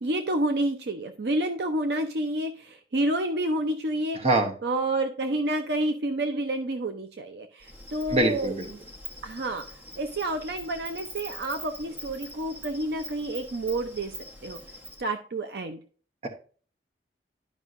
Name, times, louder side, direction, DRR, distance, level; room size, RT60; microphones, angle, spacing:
voice 1, 0.0-4.2 4.6-8.5 9.2-9.6 10.0-14.1 14.4-14.6 15.0-15.8, right 1 dB, 65° right, 7 dB, 0.6 m, -29 dB
voice 2, 4.1-4.5 8.1-8.7 16.2-16.3, right 2 dB, 35° right, 3 dB, 1.0 m, -24 dB
Insect, 7.6-15.0, equal, 10° right, 1.0 m, -43 dB
11.0 x 5.4 x 2.5 m, 0.40 s
head